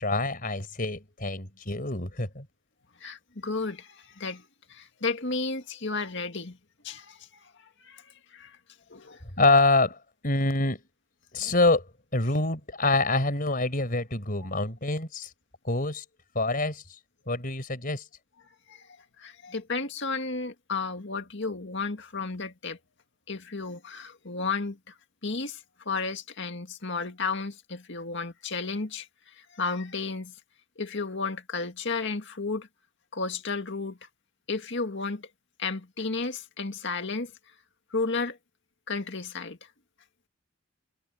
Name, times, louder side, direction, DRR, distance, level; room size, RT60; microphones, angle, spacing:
voice 1, 0.0-2.5 9.4-10.0 10.2-10.8 11.3-15.3 15.6-16.0 16.4-16.8 17.3-18.0, left 2 dB, 45° left, 5.2 m, -26 dB
voice 2, 3.0-6.6 6.8-8.6 8.9-9.2 14.4-14.5 18.7-18.9 19.2-22.8 23.3-24.9 25.2-30.3 30.8-32.7 33.1-34.0 34.5-35.3 35.6-37.3 37.9-38.4 38.9-39.6, left 4 dB, 60° left, 2.1 m, -33 dB
head